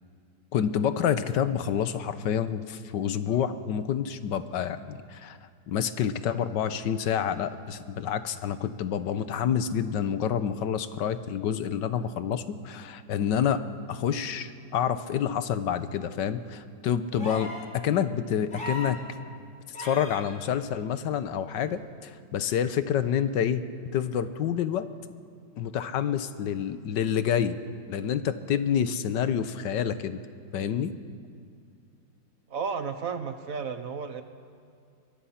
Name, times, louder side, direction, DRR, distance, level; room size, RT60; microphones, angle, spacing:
voice 1, 0.5-5.4 5.7-13.6 13.9-19.0 19.8-23.6 23.9-24.9 25.6-27.6 27.9-30.2 30.5-30.9, left 8 dB, 75° left, 12 dB, 1.5 m, -28 dB
sound 1, 17.2-17.7 18.5-19.0 19.7-20.2 21.7-21.8, equal, 40° left, 3.2 m, -37 dB
voice 2, 32.5-34.2, right 6 dB, 55° right, 9 dB, 1.3 m, -33 dB
23.5 x 22.5 x 5.8 m, 2.3 s
omnidirectional pair, 2.0 m